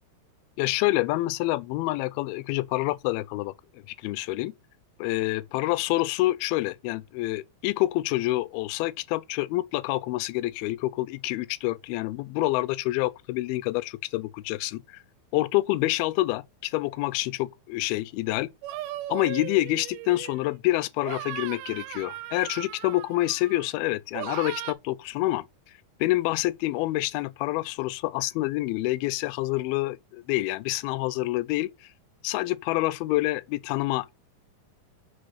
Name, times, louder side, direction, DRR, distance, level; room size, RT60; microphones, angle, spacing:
voice 1, 0.6-4.5 5.0-14.8 15.3-18.5 19.1-25.5 26.0-31.7 32.2-34.1, left 18 dB, 85° left, 2.4 m, -27 dB
sound 1, 18.6-20.6 21.0-23.7 24.1-24.7, right 14 dB, 90° right, 2.6 m, -37 dB
6.0 x 5.0 x 5.6 m
omnidirectional pair, 4.4 m